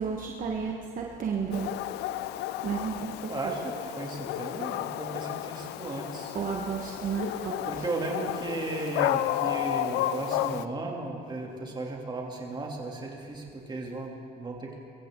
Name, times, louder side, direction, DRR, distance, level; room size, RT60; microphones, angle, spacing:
voice 1, 0.0-1.7 2.6-3.1 6.3-7.7, right 6 dB, 55° right, 0 dB, 1.4 m, -32 dB
Dog, 1.5-10.7, left 13 dB, 85° left, 0.5 m, -32 dB
voice 2, 3.3-6.3 7.6-14.8, right 2 dB, 25° right, -1 dB, 3.0 m, -35 dB
24.0 x 14.5 x 3.9 m, 2.5 s
cardioid pair, 110°, 17 cm